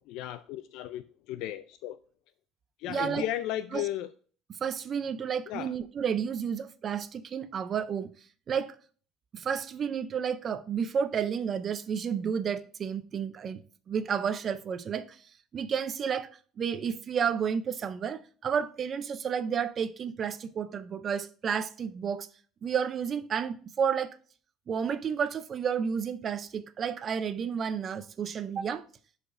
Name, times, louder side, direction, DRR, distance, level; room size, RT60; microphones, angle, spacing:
voice 1, 0.1-2.0 2.8-4.1 5.5-5.7, left 13 dB, 65° left, 0.3 m, -35 dB
voice 2, 2.9-3.3 3.7-3.8 4.6-8.1 8.5-8.8 9.3-13.6 13.9-15.2 15.5-16.3 16.6-22.3 22.6-24.1 24.7-28.9, right 7 dB, 30° right, 0.4 m, -31 dB
11.0 x 4.9 x 2.5 m
cardioid pair, 175°, 0 cm